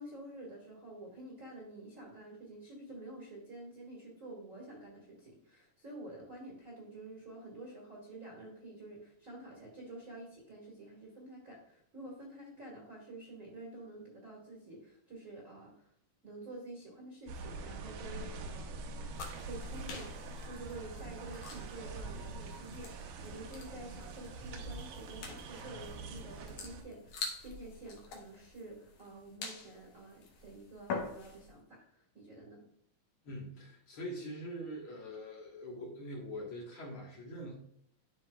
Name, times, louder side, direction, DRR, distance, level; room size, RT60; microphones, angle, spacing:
voice 1, 0.0-15.9 16.2-19.2 19.4-20.1 20.4-32.6, right 2 dB, 35° right, -3 dB, 1.4 m, -49 dB
sound 1, 17.3-26.8, right 3 dB, 85° right, 2.4 m, -44 dB
sound 2, 19.1-31.6, left 4 dB, 70° left, 2.6 m, -46 dB
voice 2, 33.2-37.6, equal, 50° left, -2 dB, 1.8 m, -43 dB
12.0 x 4.7 x 2.3 m, 0.70 s
omnidirectional pair, 3.8 m